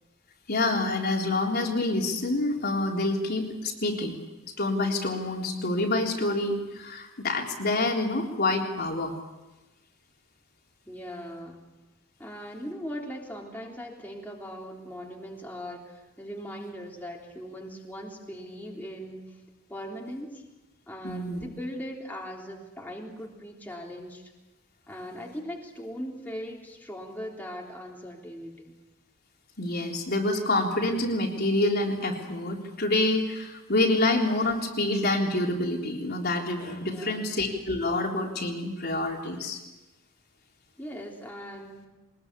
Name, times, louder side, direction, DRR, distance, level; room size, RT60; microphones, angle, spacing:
voice 1, 0.5-4.2 4.6-9.1 21.0-21.4 29.6-39.6, left 2 dB, 50° left, 0 dB, 3.7 m, -27 dB
voice 2, 10.9-11.6 12.2-19.2 19.7-20.4 20.9-24.2 24.9-28.8 36.9-37.3 40.8-41.9, equal, 10° left, -2 dB, 3.6 m, -39 dB
23.0 x 21.0 x 8.4 m, 1.1 s
head